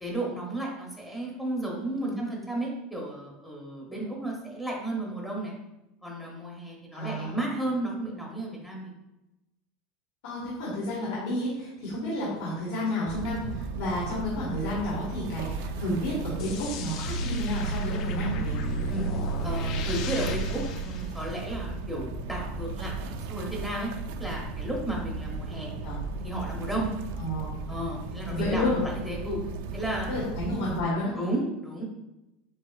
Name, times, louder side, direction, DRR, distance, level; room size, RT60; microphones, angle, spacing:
voice 1, 0.0-5.5 6.0-8.9 18.9-19.1 19.4-23.9 24.2-25.7 26.2-26.9 27.7-28.8 29.0-29.4 29.7-30.1 31.1-31.8, right 1 dB, 5° left, -3 dB, 0.7 m, -33 dB
voice 2, 6.9-7.4 10.2-18.6 25.8-26.0 27.2-27.5 28.3-28.8 30.1-31.1, left 1 dB, 70° left, -7 dB, 1.4 m, -31 dB
sound 1, 13.1-30.8, right 4 dB, 65° right, 0.4 m, -36 dB
sound 2, 16.4-21.7, right 1 dB, 40° left, 0.3 m, -32 dB
7.2 x 2.8 x 2.3 m, 0.94 s
supercardioid pair, 175°, 0 cm